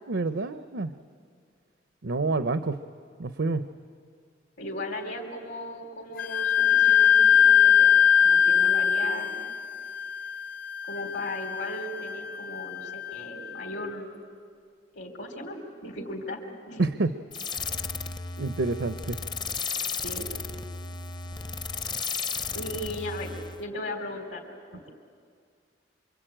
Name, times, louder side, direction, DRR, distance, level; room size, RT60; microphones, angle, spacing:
voice 1, 0.1-0.9 2.0-2.8 3.2-3.7 16.8-17.1 18.4-19.2, right 3 dB, 85° right, 11 dB, 0.7 m, -28 dB
voice 2, 4.6-9.4 10.8-14.2 14.9-16.8 20.0-20.3 22.5-23.3 23.6-24.4 24.7-24.9, left 1 dB, 75° left, 2 dB, 3.6 m, -37 dB
Wind instrument woodwind instrument, 6.2-13.6, left 8 dB, 50° left, 0.8 m, -22 dB
sound 1, 17.3-23.6, left 5 dB, 25° left, 0.6 m, -34 dB
26.5 x 24.5 x 9.0 m, 2.2 s
head